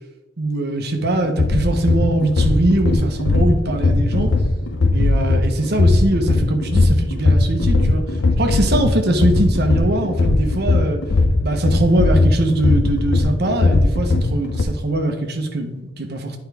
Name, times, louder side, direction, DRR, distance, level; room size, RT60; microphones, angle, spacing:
voice 1, 0.4-4.3 4.9-8.0 8.4-11.0 11.4-16.4, right 1 dB, 55° right, 4 dB, 1.0 m, -21 dB
sound 1, 1.0-14.6, left 2 dB, 65° left, 0.6 m, -18 dB
9.7 x 4.7 x 3.4 m, 1.1 s
head